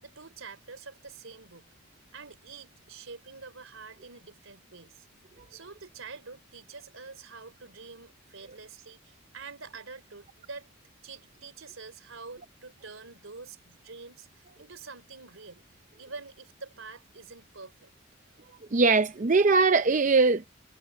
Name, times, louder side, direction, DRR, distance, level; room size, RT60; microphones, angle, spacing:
voice 1, 0.0-1.7 2.1-5.1 5.5-10.7 11.0-17.9, right 4 dB, 85° right, 3.4 m, -46 dB
voice 2, 18.7-20.5, right 4 dB, 40° right, 0.5 m, -21 dB
head